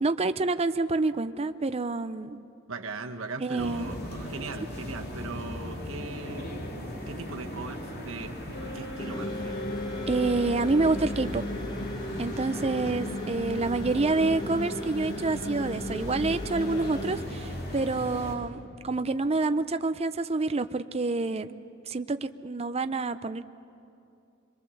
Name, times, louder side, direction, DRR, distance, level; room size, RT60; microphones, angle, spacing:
voice 1, 0.0-2.4 3.4-3.9 10.1-11.4 12.2-21.6 21.9-23.4, right 3 dB, 30° right, 10 dB, 0.6 m, -28 dB
voice 2, 2.7-6.8 7.1-9.6, right 3 dB, 70° right, 4 dB, 1.4 m, -39 dB
sound 1, 3.6-18.3, equal, 50° left, 3.0 m, -38 dB
Wind instrument woodwind instrument, 8.5-11.4, left 1 dB, 70° left, 4.8 m, -40 dB
sound 2, 9.0-17.2, left 1 dB, 20° left, 0.7 m, -36 dB
26.0 x 22.0 x 7.1 m, 2.6 s
head